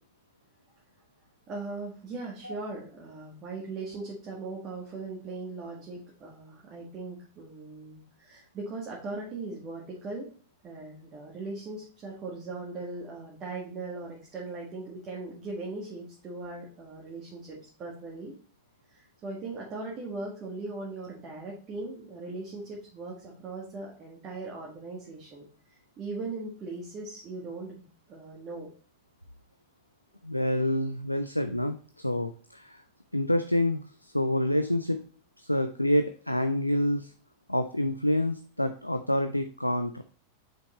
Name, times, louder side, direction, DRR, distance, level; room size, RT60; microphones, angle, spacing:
voice 1, 1.5-10.3 10.6-18.3 18.9-25.5 26.0-28.7, right 3 dB, 30° right, -4 dB, 1.8 m, -39 dB
voice 2, 30.2-31.8 32.0-32.8 33.1-35.0 35.4-37.1 37.5-40.0, left 1 dB, 90° left, 9 dB, 0.4 m, -27 dB
6.3 x 5.3 x 3.1 m, 0.41 s
figure-of-eight pair, 90°, 0 cm